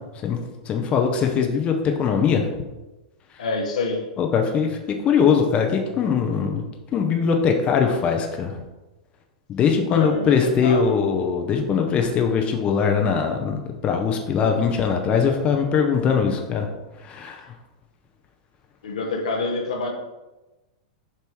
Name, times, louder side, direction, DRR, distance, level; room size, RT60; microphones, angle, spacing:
voice 1, 0.6-2.5 3.3-3.4 4.2-8.6 9.5-16.7 16.9-17.5, left 6 dB, 30° left, 3 dB, 0.8 m, -21 dB
voice 2, 3.4-4.1 9.9-11.0 18.8-19.9, left 3 dB, 75° left, 1 dB, 1.1 m, -26 dB
6.9 x 2.9 x 4.7 m, 1.1 s
hypercardioid pair, 100°, 4 cm